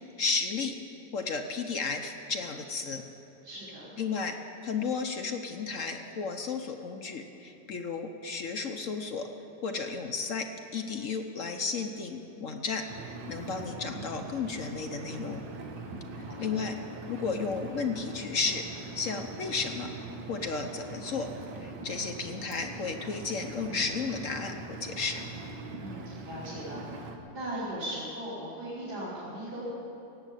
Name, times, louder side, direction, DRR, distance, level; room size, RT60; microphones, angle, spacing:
voice 1, 0.2-0.8 1.1-3.0 4.0-4.4 4.6-9.3 9.6-15.4 16.2-16.8 17.1-18.6 18.9-19.9 20.3-21.3 21.6-25.2, left 4 dB, 55° left, 5 dB, 1.0 m, -33 dB
voice 2, 3.4-3.9 15.9-16.6 25.8-27.0 27.3-29.7, right 1 dB, 65° right, -12 dB, 4.2 m, -38 dB
Engine, 12.9-27.2, right 3 dB, 90° right, 1.8 m, -42 dB
17.5 x 8.0 x 9.1 m, 2.8 s
omnidirectional pair, 1.9 m